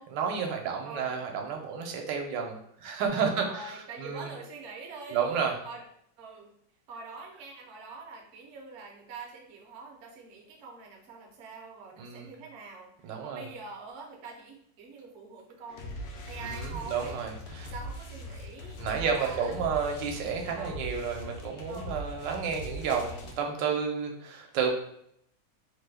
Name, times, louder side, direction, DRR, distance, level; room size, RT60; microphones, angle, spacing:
voice 1, 0.1-4.3 5.1-5.5 12.0-12.3 13.0-13.5 16.4-17.7 18.8-24.7, right 6 dB, 80° right, 2 dB, 1.3 m, -31 dB
voice 2, 3.2-5.8 6.2-6.5 6.9-16.0 16.3-17.2 17.7-19.6 20.5-20.8 21.7-22.0, right 4 dB, 60° right, 0 dB, 0.7 m, -45 dB
sound 1, 15.7-23.3, equal, 70° left, 1.0 m, -41 dB
3.2 x 2.1 x 3.3 m, 0.71 s
omnidirectional pair, 1.9 m